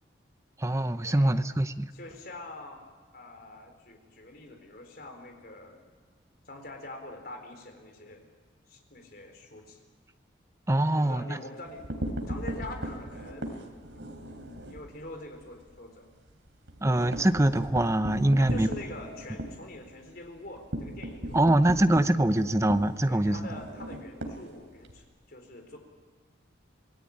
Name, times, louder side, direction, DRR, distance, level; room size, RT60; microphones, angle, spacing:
voice 1, 0.6-1.9 10.7-11.4 16.8-18.7 21.3-23.5, right 1 dB, 15° right, 10 dB, 0.7 m, -24 dB
voice 2, 1.9-2.8 3.1-5.9 6.5-8.3 8.7-9.8 10.9-11.8 12.3-16.2 18.4-21.6 22.0-22.2 23.1-25.8, left 2 dB, 50° left, 4 dB, 4.2 m, -45 dB
sound 1, 11.7-14.9 15.2-15.4 15.7-15.8 16.2-25.0, right 1 dB, 75° right, 3.4 m, -37 dB
26.5 x 19.0 x 8.8 m, 1.4 s
head